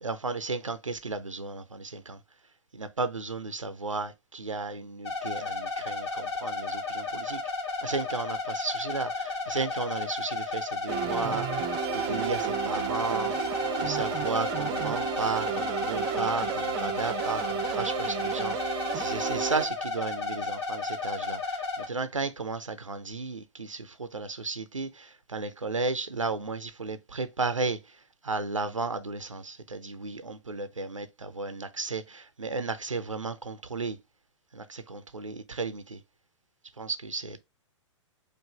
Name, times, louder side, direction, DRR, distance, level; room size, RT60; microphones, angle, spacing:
voice 1, 0.0-2.2 2.7-7.4 7.8-13.3 13.8-27.8 28.2-34.0 34.5-36.0 36.8-37.4, right 3 dB, 85° right, 0.5 m, -34 dB
sound 1, 5.0-21.9, left 3 dB, 55° left, 1.2 m, -33 dB
sound 2, 10.9-19.7, right 9 dB, 25° right, 0.6 m, -32 dB
4.6 x 2.5 x 2.9 m
figure-of-eight pair, 110°, 16 cm